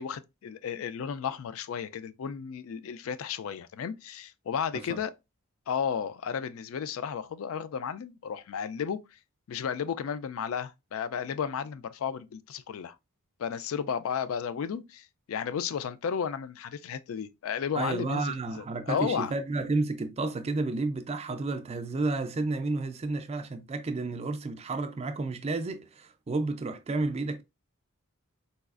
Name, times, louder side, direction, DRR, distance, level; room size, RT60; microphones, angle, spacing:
voice 1, 0.0-5.1 5.7-9.0 9.5-13.0 13.4-19.3, left 7 dB, 70° left, 0.3 m, -33 dB
voice 2, 17.8-27.4, right 3 dB, 30° right, 0.4 m, -31 dB
4.0 x 2.3 x 2.4 m
head